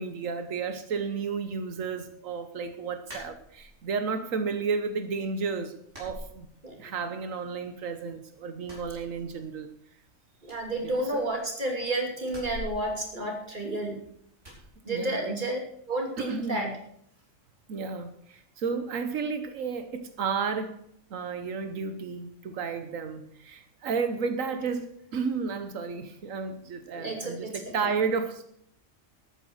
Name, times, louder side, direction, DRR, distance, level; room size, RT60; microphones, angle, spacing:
voice 1, 0.0-6.5 6.8-9.7 10.8-11.2 14.9-15.4 16.2-16.7 17.7-20.8 21.1-28.4, right 5 dB, 90° right, 9 dB, 1.4 m, -32 dB
sound 1, 3.0-3.9 4.3-5.0 5.3-5.4 5.9-7.0 7.3-8.1 8.5-9.7 10.0-10.1 10.4-11.6 12.2-13.9 14.4-14.7, left 1 dB, 65° right, 5.9 m, -45 dB
voice 2, 10.4-14.0 14.8-15.6 15.9-16.7 26.9-27.7, right 1 dB, 35° right, 2 dB, 3.1 m, -31 dB
13.0 x 9.3 x 6.3 m, 0.68 s
omnidirectional pair, 1.3 m